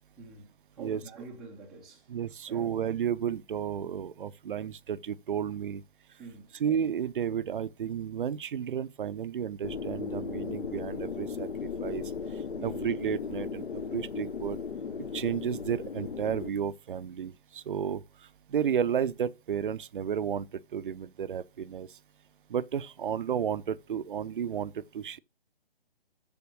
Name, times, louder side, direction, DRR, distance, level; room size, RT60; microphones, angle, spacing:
voice 1, 0.2-2.0 2.5-2.7 6.2-6.5 12.6-12.8, right 4 dB, ahead, 0.4 m, -46 dB
voice 2, 2.1-5.8 6.5-14.6 15.1-22.0 22.5-25.2, right 8 dB, 55° right, 0.5 m, -32 dB
sound 1, 9.6-16.5, left 5 dB, 75° left, 1.0 m, -36 dB
7.0 x 5.7 x 6.1 m
figure-of-eight pair, 140°, 31 cm